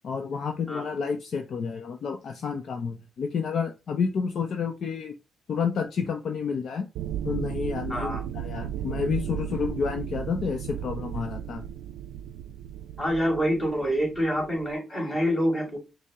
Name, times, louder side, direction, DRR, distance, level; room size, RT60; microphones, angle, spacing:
voice 1, 0.0-5.1 5.5-6.9 7.2-11.7, left 6 dB, 60° left, 0.5 m, -30 dB
sound 1, 7.0-14.7, right 10 dB, 85° right, 0.3 m, -35 dB
voice 2, 7.9-8.2 13.0-15.8, equal, 25° left, 2.3 m, -26 dB
5.2 x 2.0 x 3.6 m
cardioid pair, 90°, 0 cm